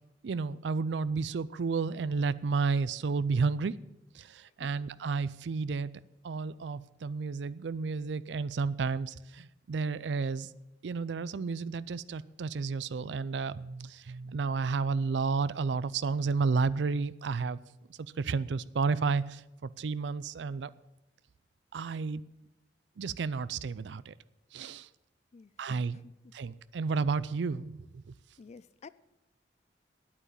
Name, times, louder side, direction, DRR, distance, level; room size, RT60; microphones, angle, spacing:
voice 1, 0.2-3.8 4.1-5.9 6.2-10.5 10.8-17.6 18.2-20.7 21.7-22.2 23.0-24.1 24.5-24.9 25.6-26.0 26.3-27.8, right 4 dB, 75° right, 18 dB, 0.4 m, -31 dB
voice 2, 28.4-28.9, left 4 dB, 40° left, 18 dB, 0.3 m, -51 dB
9.3 x 8.7 x 8.7 m, 0.94 s
head